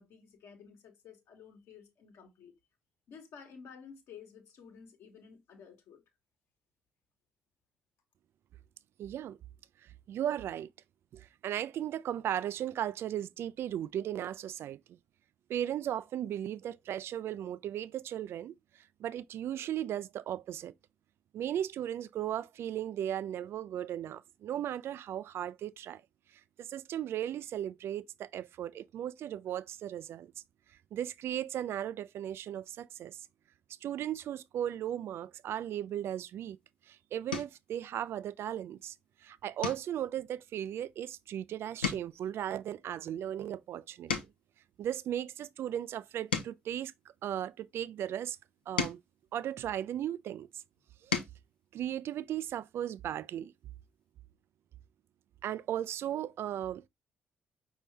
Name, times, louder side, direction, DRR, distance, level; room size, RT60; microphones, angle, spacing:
voice 1, 0.0-2.5 3.1-6.0, left 6 dB, 60° left, 1.2 m, -53 dB
voice 2, 9.0-9.4 9.8-10.7 11.1-15.0 15.5-18.5 19.0-20.7 21.3-26.0 26.6-30.3 30.9-33.3 33.8-36.6 36.9-39.0 39.2-44.1 44.8-46.9 47.2-48.4 48.7-49.0 49.3-50.5 51.0-51.1 51.7-53.5 55.4-56.8, right 11 dB, 55° right, 0.3 m, -36 dB
sound 1, 36.4-36.7 37.3-37.7 38.2-38.6 38.9-39.1 39.6-41.4 41.7-44.6 45.2-47.7 48.4-50.2 50.7-51.5 52.9-53.0 53.3-53.4, left 6 dB, 85° left, 0.6 m, -39 dB
5.3 x 2.7 x 3.3 m
figure-of-eight pair, 45°, 5 cm